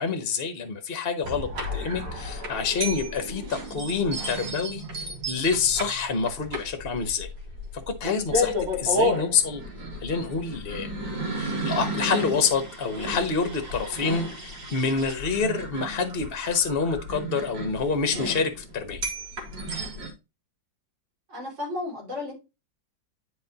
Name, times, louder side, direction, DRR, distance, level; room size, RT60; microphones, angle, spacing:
voice 1, 0.0-7.3 7.7-9.6 10.0-10.9 11.3-19.0, left 5 dB, 40° left, 1.0 m, -27 dB
sound 1, 1.2-20.1, equal, 85° right, 2.8 m, -32 dB
voice 2, 14.7-15.0 21.3-22.3, left 2 dB, 40° right, 3.2 m, -34 dB
10.5 x 4.7 x 2.8 m
omnidirectional pair, 2.0 m